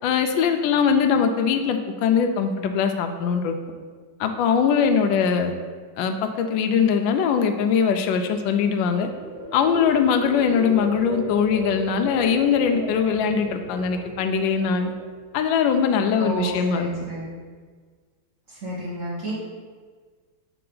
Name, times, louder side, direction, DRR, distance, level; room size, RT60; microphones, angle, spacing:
voice 1, 0.0-3.6 4.2-5.5 6.0-9.1 9.5-14.9 15.3-16.9, left 6 dB, 75° left, 6 dB, 1.2 m, -21 dB
sound 1, 8.3-15.4 15.8-16.2, right 1 dB, 60° right, 1.6 m, -36 dB
voice 2, 16.1-17.3 18.5-19.3, equal, 40° right, -7 dB, 1.8 m, -31 dB
5.8 x 3.3 x 5.4 m, 1.5 s
omnidirectional pair, 2.2 m